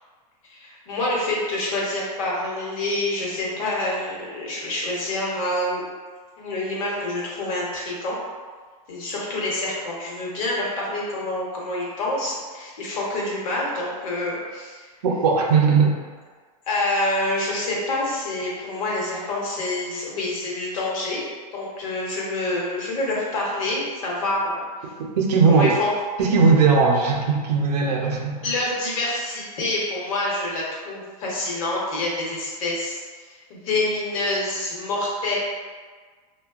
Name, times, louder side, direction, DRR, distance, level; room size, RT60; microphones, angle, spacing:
voice 1, 0.5-5.8 6.4-8.2 8.9-14.9 16.7-21.2 21.5-24.6 25.5-25.9 28.4-33.2 33.5-35.4, left 2 dB, 60° left, -4 dB, 0.9 m, -27 dB
voice 2, 15.0-16.0 25.0-25.7 26.2-28.4, right 4 dB, 85° right, 0 dB, 0.6 m, -18 dB
2.9 x 2.2 x 2.4 m, 1.5 s
supercardioid pair, 155°, 20 cm